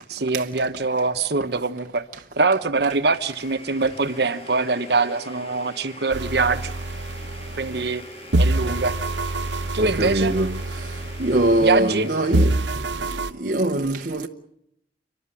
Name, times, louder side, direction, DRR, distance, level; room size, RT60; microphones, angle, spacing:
voice 1, 0.1-2.0 2.4-6.7 7.6-8.0 8.4-9.0 9.7-10.3 11.6-12.1, right 3 dB, 65° right, 1.2 m, -23 dB
Domestic sounds home sounds, 2.9-12.9, left 2 dB, 35° left, 3.1 m, -43 dB
sound 1, 6.1-8.0 8.3-12.0 12.3-13.3, right 2 dB, 90° right, 0.8 m, -26 dB
voice 2, 9.8-14.3, right 1 dB, 50° right, 0.9 m, -23 dB
30.0 x 11.5 x 9.8 m
head